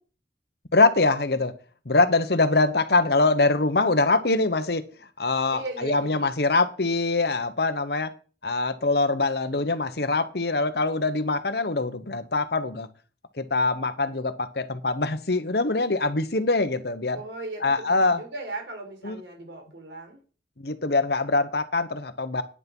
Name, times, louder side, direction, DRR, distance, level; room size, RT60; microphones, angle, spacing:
voice 1, 0.7-1.5 1.9-4.8 5.2-8.1 8.4-12.9 13.4-17.2 17.6-18.2 19.0-19.2 20.6-22.4, left 3 dB, 60° left, 12 dB, 1.1 m, -23 dB
voice 2, 5.5-6.2 17.1-20.2, right 2 dB, 85° right, 2 dB, 4.4 m, -37 dB
9.8 x 8.3 x 5.4 m, 0.38 s
head